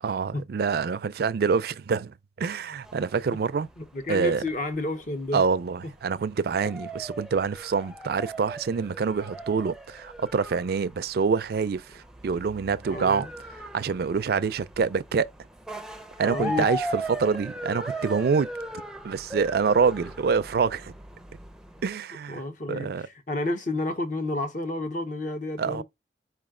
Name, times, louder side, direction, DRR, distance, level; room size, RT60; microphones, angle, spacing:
voice 1, 0.0-3.7 4.1-4.4 5.3-13.3 13.7-15.3 16.2-18.5 19.0-20.9 21.8-22.4 22.7-23.0 25.6-25.8, right 5 dB, 60° right, 0.4 m, -26 dB
sound 1, 2.8-21.9, right 1 dB, 5° right, 0.5 m, -39 dB
voice 2, 3.8-5.4 12.9-13.3 16.2-16.7 22.3-25.8, left 2 dB, 45° left, 0.9 m, -30 dB
4.7 x 3.1 x 3.7 m
head